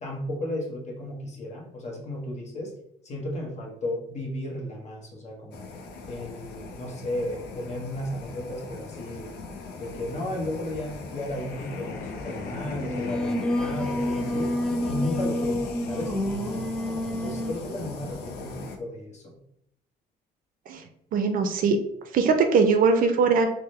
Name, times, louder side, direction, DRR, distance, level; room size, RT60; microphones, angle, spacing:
voice 1, 0.0-2.7 3.0-5.7 6.1-9.3 9.8-14.5 14.9-19.4, left 1 dB, 40° left, -1 dB, 1.0 m, -34 dB
sound 1, 5.5-18.8, left 4 dB, 75° left, 0.6 m, -38 dB
Singing, 12.8-17.7, left 1 dB, 5° left, 0.3 m, -29 dB
voice 2, 21.1-21.8 22.1-23.5, right 5 dB, 55° right, 6 dB, 0.5 m, -21 dB
3.5 x 2.1 x 3.1 m, 0.77 s
cardioid pair, 110°, 17 cm